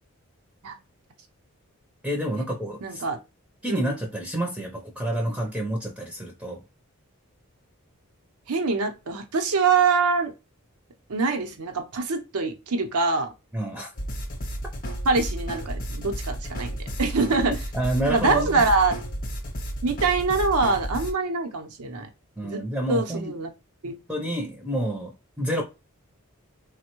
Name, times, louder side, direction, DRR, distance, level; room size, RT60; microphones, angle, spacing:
voice 1, 2.0-3.0 3.6-6.6 13.5-13.9 17.7-18.6 22.4-23.3 24.1-25.6, right 1 dB, 5° right, 0.5 m, -29 dB
voice 2, 2.8-3.2 3.7-4.0 8.5-10.3 11.1-13.3 15.1-17.5 18.1-18.9 19.8-22.1 22.4-22.6 22.9-23.5 23.8-23.9, right 4 dB, 90° right, 0.7 m, -24 dB
sound 1, 14.0-21.1, equal, 40° left, 0.7 m, -32 dB
3.3 x 2.1 x 2.9 m
head